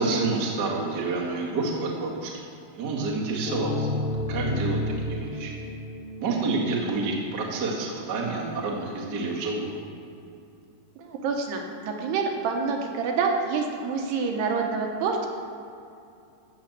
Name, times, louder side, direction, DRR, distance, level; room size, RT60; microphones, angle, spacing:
voice 1, 0.0-2.3 2.8-3.9 4.3-5.5 6.2-9.8, right 3 dB, 50° right, -2 dB, 1.2 m, -28 dB
sound 1, 3.5-7.1, left 1 dB, 70° left, 2.9 m, -31 dB
voice 2, 11.0-15.3, right 5 dB, 70° right, 2 dB, 2.9 m, -27 dB
14.5 x 7.3 x 7.4 m, 2.5 s
omnidirectional pair, 5.2 m